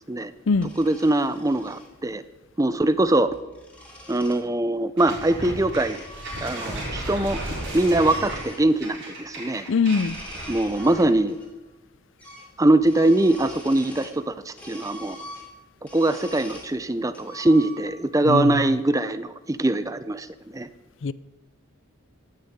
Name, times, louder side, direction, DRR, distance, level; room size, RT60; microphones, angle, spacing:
sound 1, 0.6-1.9 3.1-4.4 5.3-7.0 7.2-8.6 9.8-11.5 11.7-11.8 12.2-12.5 12.8-14.2 14.6-16.7 17.1-18.1, equal, 5° left, 2.9 m, -44 dB
voice 1, 0.8-2.2 2.6-3.3 4.1-6.0 6.4-7.4 7.7-9.6 10.5-11.4 12.6-15.2 15.8-20.3 20.5-20.7, right 1 dB, 15° right, 0.5 m, -22 dB
sound 2, 5.0-11.2, right 1 dB, 55° right, 6.1 m, -34 dB
voice 2, 9.7-10.2 18.2-18.8 21.0-21.1, left 5 dB, 60° left, 0.5 m, -22 dB
15.5 x 6.6 x 9.6 m
head